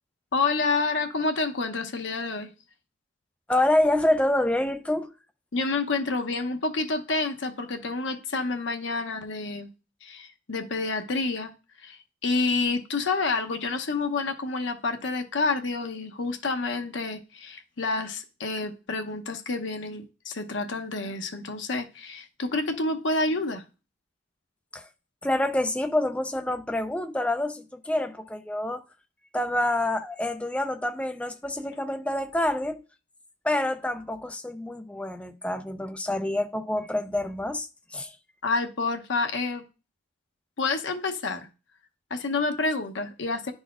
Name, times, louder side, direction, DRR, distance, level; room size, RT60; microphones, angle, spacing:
voice 1, 0.3-2.5 5.5-9.7 10.0-11.5 11.8-23.6 38.4-39.6 40.6-41.5 42.1-43.5, left 3 dB, 80° left, 0.8 m, -28 dB
voice 2, 3.5-5.1 24.7-24.8 25.2-28.8 29.3-32.8 33.4-38.1, left 1 dB, 5° left, 0.4 m, -27 dB
10.0 x 4.1 x 2.4 m
head